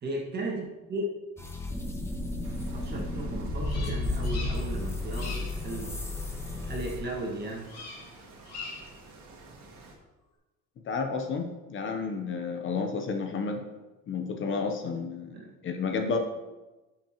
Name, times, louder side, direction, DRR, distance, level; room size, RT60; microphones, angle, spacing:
voice 1, 0.0-1.1 2.7-6.0 6.6-7.7 15.3-15.5, right 2 dB, 35° right, -1 dB, 1.8 m, -35 dB
sound 1, 1.4-7.0, left 2 dB, 10° left, 0.8 m, -33 dB
sound 2, 2.4-10.0, right 3 dB, 70° right, 1.8 m, -51 dB
Bird vocalization bird call bird song, 3.6-4.8 5.1-5.6 7.7-8.1 8.4-9.0, left 4 dB, 60° left, 2.0 m, -42 dB
voice 2, 10.9-13.6 14.1-15.3 15.6-16.2, left 5 dB, 40° left, 5 dB, 0.8 m, -31 dB
11.5 x 5.9 x 3.0 m, 1.1 s
cardioid pair, 145°, 30 cm